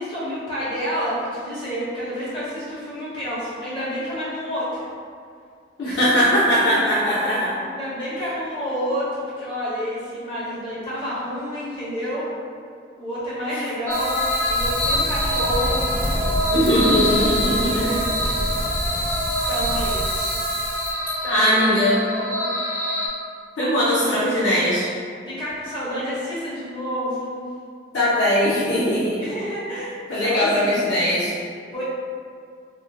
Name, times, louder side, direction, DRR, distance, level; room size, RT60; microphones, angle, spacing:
voice 1, 0.0-4.9 5.8-6.1 7.1-7.3 7.6-12.3 13.0-15.9 17.1-17.3 17.7-18.5 18.9-19.1 19.5-20.4 21.2-21.8 22.2-22.4 24.0-24.2 25.3-27.4 29.2-30.7 31.7-31.8, equal, 25° left, -11 dB, 1.2 m, -29 dB
voice 2, 5.8-7.5 16.5-17.8 21.3-22.0 23.6-24.9 27.9-29.2 30.1-31.3, equal, 75° left, -9 dB, 0.6 m, -20 dB
sound 1, 13.9-23.1, left 1 dB, 10° left, 0.4 m, -25 dB
Wind, 13.9-20.9, right 1 dB, 65° right, 0.7 m, -28 dB
3.4 x 2.6 x 2.3 m, 2.2 s
head